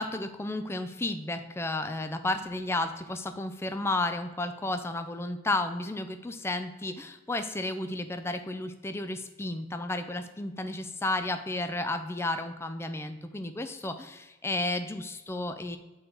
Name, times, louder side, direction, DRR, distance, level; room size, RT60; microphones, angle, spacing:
voice 1, 0.0-15.8, left 2 dB, 15° left, 8 dB, 0.4 m, -32 dB
6.6 x 3.9 x 4.4 m, 1.1 s
head